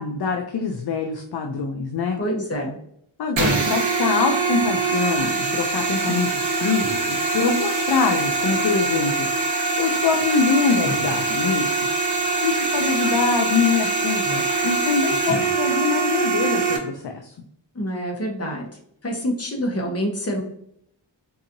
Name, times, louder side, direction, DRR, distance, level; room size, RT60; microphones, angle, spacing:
voice 1, 0.0-2.2 3.2-9.3 9.8-11.8 12.4-17.3, left 5 dB, 55° left, 3 dB, 0.5 m, -24 dB
voice 2, 2.2-2.8 17.7-18.7 19.0-20.4, equal, 30° left, 0 dB, 1.0 m, -26 dB
sound 1, 3.4-16.8, right 3 dB, 75° right, 0.9 m, -23 dB
3.9 x 2.8 x 2.6 m, 0.67 s
wide cardioid pair, 75°, 46 cm